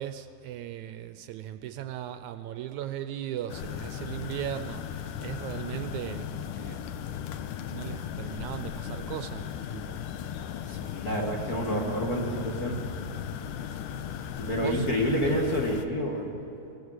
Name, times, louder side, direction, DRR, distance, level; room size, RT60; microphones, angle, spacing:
voice 1, 0.0-10.0 10.6-10.8 14.2-14.9, right 11 dB, 80° right, 10 dB, 1.9 m, -38 dB
sound 1, 3.5-15.9, left 9 dB, 85° left, 2.4 m, -36 dB
voice 2, 10.7-12.8 14.4-16.3, equal, 35° left, 0 dB, 2.1 m, -28 dB
21.5 x 18.5 x 8.1 m, 2.8 s
omnidirectional pair, 3.6 m